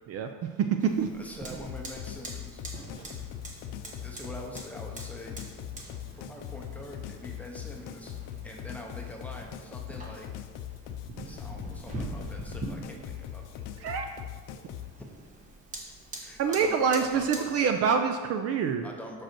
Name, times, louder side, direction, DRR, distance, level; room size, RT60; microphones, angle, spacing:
voice 1, 0.1-1.1 13.8-14.1 16.4-18.9, right 6 dB, 45° right, 6 dB, 0.5 m, -26 dB
Fire, 0.8-17.6, right 2 dB, 20° right, 1.1 m, -44 dB
voice 2, 1.2-2.6 4.0-5.4 6.1-8.1 8.4-10.3 11.2-13.6 15.0-15.2 15.5-15.6 16.1-17.5 18.8-19.2, left 1 dB, 5° left, 0 dB, 0.7 m, -44 dB
sound 1, 1.7-14.9, left 11 dB, 60° left, 0.6 m, -41 dB
7.7 x 6.3 x 4.4 m, 1.4 s
cardioid pair, 180°, 35 cm